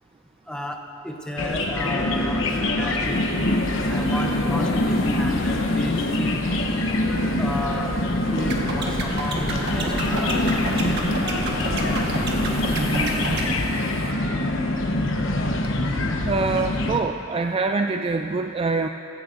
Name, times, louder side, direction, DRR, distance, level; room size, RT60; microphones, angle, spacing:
voice 1, 0.5-3.2 3.9-6.4 7.4-8.0 8.3-11.0, left 1 dB, 5° left, 2 dB, 0.8 m, -33 dB
sound 1, 1.4-17.0, left 1 dB, 75° left, 1.0 m, -24 dB
sound 2, 3.0-14.1, left 1 dB, 50° left, 2.0 m, -35 dB
sound 3, 8.4-13.5, right 2 dB, 55° right, 1.5 m, -29 dB
voice 2, 12.7-13.6 16.3-18.9, right 3 dB, 25° right, 6 dB, 0.3 m, -25 dB
17.0 x 16.0 x 2.6 m, 3.0 s
head